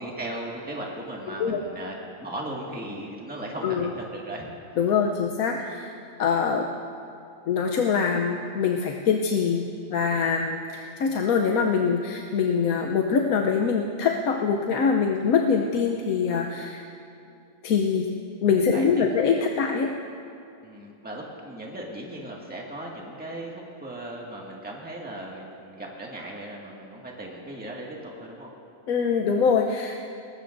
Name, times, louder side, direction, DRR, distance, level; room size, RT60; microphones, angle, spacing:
voice 1, 0.0-4.5 18.7-19.0 20.6-28.5, right 1 dB, 5° right, -3 dB, 1.8 m, -37 dB
voice 2, 4.8-5.9 6.2-6.7 7.5-16.8 17.6-18.1 18.4-19.9 28.9-30.0, left 6 dB, 80° left, 2 dB, 1.2 m, -24 dB
20.0 x 19.0 x 2.6 m, 2.6 s
omnidirectional pair, 1.5 m